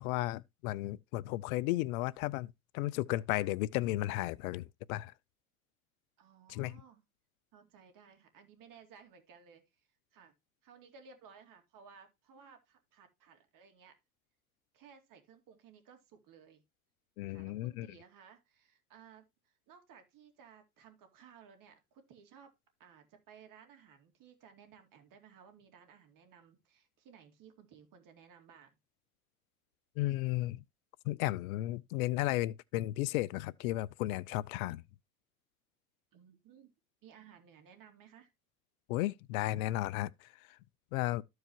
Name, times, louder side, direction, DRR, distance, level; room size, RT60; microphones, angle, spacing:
voice 1, 0.0-5.1 6.5-6.8 17.2-17.9 30.0-30.6 31.0-34.8 38.9-40.3 40.9-41.2, left 17 dB, 75° left, 0.5 m, -34 dB
voice 2, 6.2-7.0 7.5-10.3 10.6-14.0 14.7-16.6 17.3-22.5 22.8-28.7 36.1-36.7 37.0-38.3, right 7 dB, 50° right, 2.3 m, -58 dB
13.5 x 4.8 x 2.9 m
hypercardioid pair, 90°, 42 cm